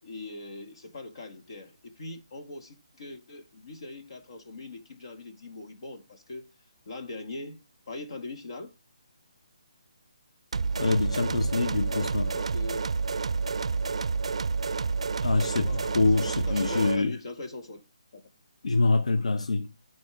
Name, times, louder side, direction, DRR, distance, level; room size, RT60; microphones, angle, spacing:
voice 1, 0.0-6.5 6.9-8.7 11.6-12.9 15.2-17.8 18.1-18.2, left 3 dB, 50° left, 1.8 m, -42 dB
sound 1, 10.5-17.0, right 4 dB, 70° right, 0.4 m, -29 dB
voice 2, 10.8-12.3 15.2-17.1 18.6-19.7, left 3 dB, 80° left, 0.7 m, -25 dB
12.0 x 4.3 x 3.4 m
hypercardioid pair, 170°, 3 cm